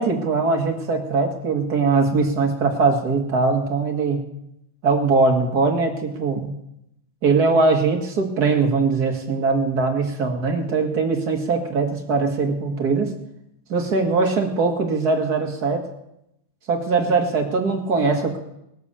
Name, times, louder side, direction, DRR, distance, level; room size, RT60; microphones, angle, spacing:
voice 1, 0.0-4.2 4.8-6.5 7.2-13.1 13.7-15.9 16.7-18.4, right 4 dB, 50° right, 2 dB, 2.4 m, -21 dB
20.0 x 8.3 x 6.9 m, 0.82 s
omnidirectional pair, 2.2 m